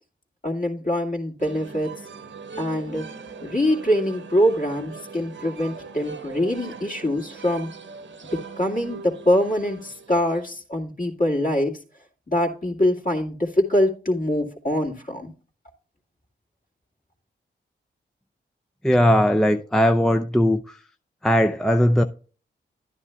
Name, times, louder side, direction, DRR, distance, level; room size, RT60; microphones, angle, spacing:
voice 1, 0.4-1.9 2.6-3.1 3.4-7.7 8.3-11.8 12.3-15.3, left 1 dB, 40° left, 2.2 m, -24 dB
sound 1, 1.4-10.6, right 5 dB, 65° right, 1.0 m, -40 dB
voice 2, 18.8-20.8 21.2-22.0, equal, ahead, 0.5 m, -19 dB
11.0 x 9.8 x 2.3 m
supercardioid pair, 40°, 21 cm